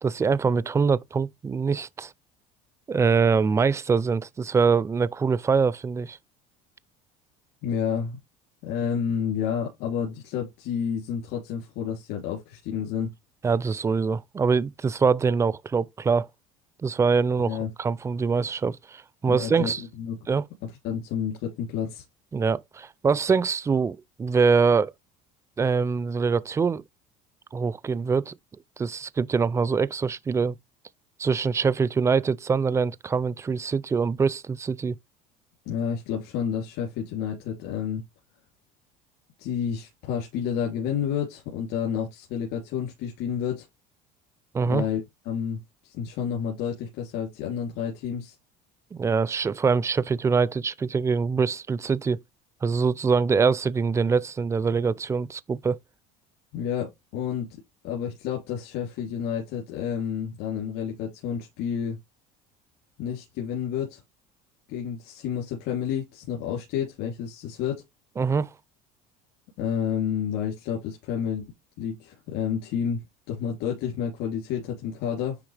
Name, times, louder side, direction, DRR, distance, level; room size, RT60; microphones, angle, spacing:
voice 1, 0.0-2.1 2.9-6.2 13.4-16.3 16.8-19.8 20.3-20.5 22.3-24.9 25.6-26.8 27.5-28.3 28.8-30.6 31.2-35.0 44.5-44.9 48.9-52.2 52.6-55.8 68.2-68.5, right 5 dB, 15° right, 0.4 m, -24 dB
voice 2, 7.6-8.2 8.6-13.1 17.5-17.7 19.2-20.2 20.6-22.0 35.6-38.0 39.4-43.7 44.7-45.6 45.8-48.3 56.5-57.6 57.8-62.0 63.0-64.0 64.7-67.8 69.6-71.4 71.8-75.4, left 8 dB, 75° left, 3.1 m, -30 dB
9.9 x 3.5 x 3.3 m
supercardioid pair, 105°, 18 cm